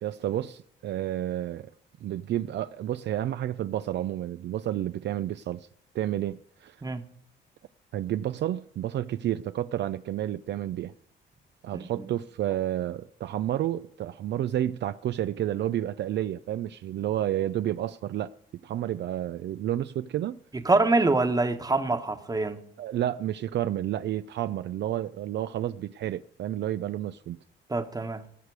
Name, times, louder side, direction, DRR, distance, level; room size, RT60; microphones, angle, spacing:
voice 1, 0.0-1.7 2.0-5.7 5.9-6.8 7.9-10.9 11.6-18.3 18.6-20.4 22.8-27.4, right 12 dB, 60° right, 0.5 m, -30 dB
voice 2, 11.7-12.1 20.5-22.6 27.7-28.2, right 3 dB, 20° right, 1.2 m, -25 dB
18.5 x 6.6 x 4.8 m
cardioid pair, 90°, 20 cm